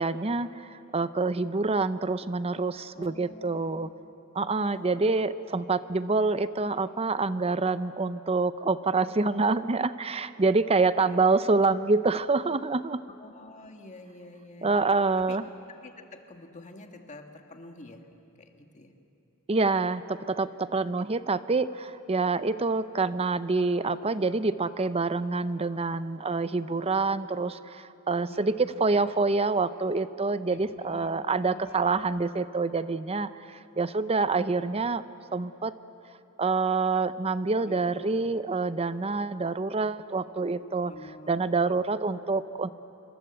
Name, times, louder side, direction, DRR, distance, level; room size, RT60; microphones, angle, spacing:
voice 1, 0.0-3.9 4.3-13.0 14.6-15.4 19.5-35.0 35.3-35.8 36.4-40.9 41.3-42.7, right 3 dB, 30° right, 13 dB, 0.7 m, -27 dB
voice 2, 2.9-3.9 4.6-5.3 10.7-11.2 11.7-11.8 13.2-14.9 15.2-15.4 15.7-18.1 18.4-18.9 20.8-20.9 28.3-28.8 30.5-32.0 37.6-37.9 40.9-41.4, left 2 dB, 35° left, 4 dB, 1.9 m, -48 dB
27.0 x 25.0 x 8.0 m, 2.7 s
head